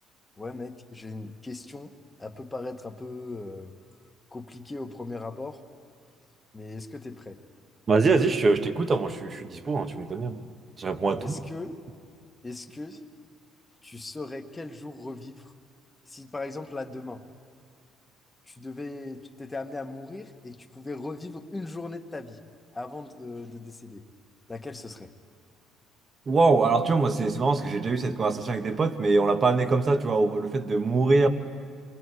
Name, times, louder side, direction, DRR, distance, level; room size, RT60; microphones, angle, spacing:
voice 1, 0.4-1.9 2.2-3.7 4.3-5.6 6.5-7.4 11.2-11.8 12.4-13.0 13.8-15.5 16.1-17.2 18.5-22.4 22.7-24.1 24.5-25.1, left 2 dB, 20° left, 6 dB, 1.5 m, -38 dB
voice 2, 7.9-10.4 10.8-11.4 26.3-31.3, right 3 dB, 40° right, 8 dB, 1.5 m, -23 dB
28.0 x 22.5 x 4.8 m, 2.3 s
supercardioid pair, 70°, 0 cm